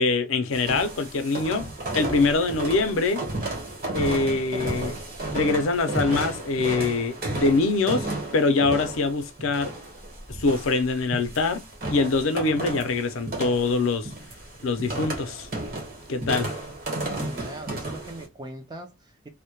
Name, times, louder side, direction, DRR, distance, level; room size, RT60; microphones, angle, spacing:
voice 1, 0.0-1.7 1.9-3.2 3.9-5.0 5.3-8.1 8.3-9.7 10.3-11.6 11.9-14.1 14.6-15.5 16.1-16.5, left 3 dB, 75° left, 0.5 m, -24 dB
sound 1, 0.5-18.3, right 2 dB, 45° right, 1.0 m, -33 dB
voice 2, 17.1-19.3, right 1 dB, 20° right, 0.4 m, -40 dB
2.1 x 2.1 x 2.8 m
head